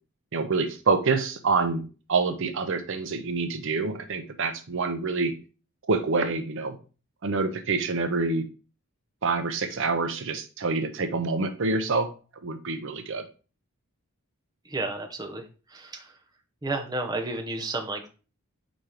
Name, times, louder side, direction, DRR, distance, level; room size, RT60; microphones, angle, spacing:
voice 1, 0.3-1.8 2.1-5.3 5.9-6.8 7.2-8.5 9.2-12.1 12.4-13.3, right 4 dB, 60° right, 8 dB, 0.6 m, -26 dB
voice 2, 14.6-15.4 15.7-16.1 16.6-18.1, right 2 dB, 20° right, 3 dB, 0.8 m, -32 dB
4.6 x 4.2 x 4.9 m, 0.35 s
head